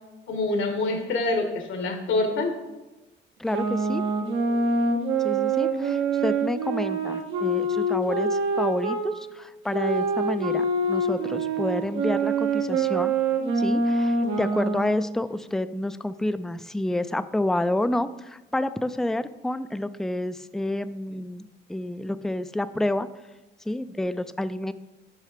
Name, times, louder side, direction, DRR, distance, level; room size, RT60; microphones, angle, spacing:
voice 1, 0.3-2.5, left 2 dB, 75° left, 4 dB, 1.4 m, -26 dB
voice 2, 3.4-4.0 5.2-13.1 13.6-23.1 23.7-24.7, left 1 dB, ahead, 13 dB, 0.3 m, -29 dB
sound 1, 3.5-9.1 9.7-15.2, right 3 dB, 85° right, 1.3 m, -25 dB
6.3 x 5.7 x 5.0 m, 1.0 s
cardioid pair, 90°, 20 cm